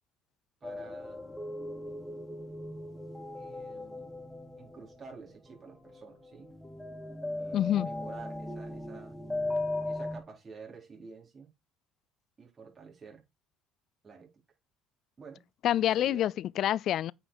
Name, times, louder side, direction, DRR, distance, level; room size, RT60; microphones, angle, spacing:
sound 1, 0.6-10.2, left 2 dB, 5° left, 2.6 m, -38 dB
voice 1, 0.6-1.2 3.4-4.1 4.6-6.5 7.4-9.2 9.9-11.5 12.4-13.2 14.0-14.3 15.2-15.5 15.8-16.3, right 5 dB, 35° right, 4.2 m, -50 dB
voice 2, 7.5-7.9 15.6-17.1, left 11 dB, 60° left, 0.3 m, -27 dB
8.6 x 5.1 x 4.8 m
hypercardioid pair, 60°, 0 cm